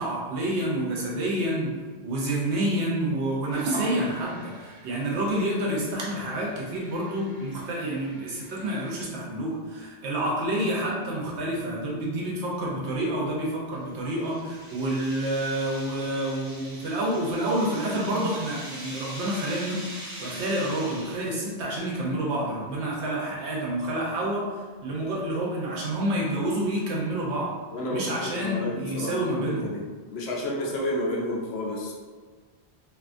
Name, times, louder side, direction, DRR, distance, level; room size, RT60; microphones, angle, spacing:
voice 1, 0.0-1.7 2.0-19.8 20.2-24.5 24.8-27.5 27.9-29.7, right 1 dB, 85° right, -4 dB, 1.0 m, -28 dB
sound 1, 3.5-9.1, right 2 dB, 55° right, 0.3 m, -39 dB
sound 2, 13.9-21.5, right 1 dB, 20° right, 0.9 m, -42 dB
voice 2, 27.7-29.2 29.6-29.8 30.1-31.9, left 1 dB, 75° left, -2 dB, 0.8 m, -30 dB
2.7 x 2.5 x 2.5 m, 1.5 s
omnidirectional pair, 1.1 m